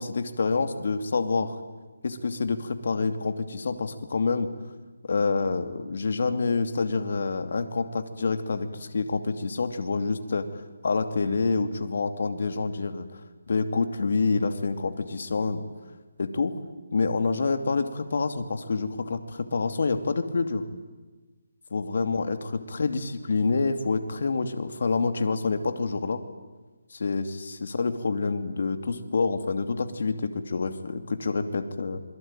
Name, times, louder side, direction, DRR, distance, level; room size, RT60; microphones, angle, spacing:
voice 1, 0.0-1.6 2.0-4.5 5.0-10.5 10.8-13.2 13.5-15.6 16.2-16.5 16.9-20.6 21.7-26.2 26.9-32.0, left 4 dB, 60° left, 8 dB, 2.6 m, -27 dB
27.0 x 22.5 x 9.1 m, 1.3 s
hypercardioid pair, 165°, 0 cm